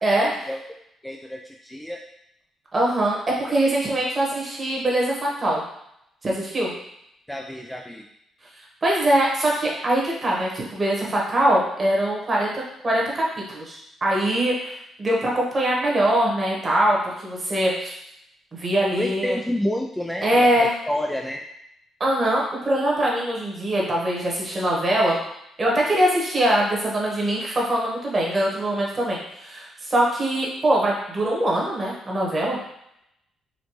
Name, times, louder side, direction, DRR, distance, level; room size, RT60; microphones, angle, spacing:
voice 1, 0.0-0.5 2.7-5.6 6.2-6.7 8.8-17.9 18.5-19.4 20.2-20.7 22.0-25.2 25.6-32.6, right 1 dB, 30° right, -3 dB, 1.3 m, -22 dB
voice 2, 1.0-2.0 7.3-8.0 18.9-21.4, left 1 dB, 5° left, 1 dB, 0.3 m, -29 dB
4.3 x 2.6 x 3.1 m, 0.78 s
cardioid pair, 90°, 0 cm